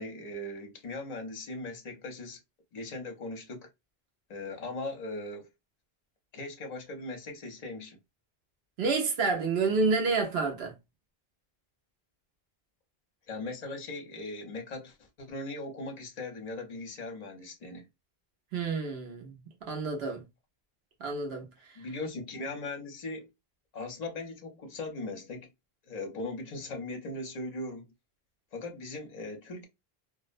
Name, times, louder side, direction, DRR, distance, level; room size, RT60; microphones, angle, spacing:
voice 1, 0.0-2.4 2.7-3.7 4.3-5.5 6.3-8.0 13.3-17.9 21.8-23.3 23.7-25.5 25.9-27.9 28.5-29.7, left 2 dB, 45° left, 0.8 m, -39 dB
voice 2, 8.8-10.7 18.5-19.3 19.6-20.2 21.0-21.5, right 4 dB, 90° right, 1.0 m, -29 dB
2.5 x 2.0 x 2.4 m
omnidirectional pair, 1.0 m